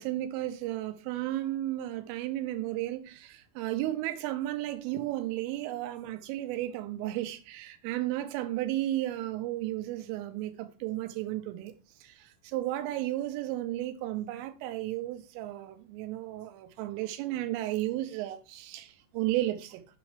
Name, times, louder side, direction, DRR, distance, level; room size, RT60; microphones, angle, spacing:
voice 1, 0.0-11.7 12.0-19.8, right 15 dB, 90° right, 3.4 m, -33 dB
7.5 x 6.2 x 3.3 m
omnidirectional pair, 5.6 m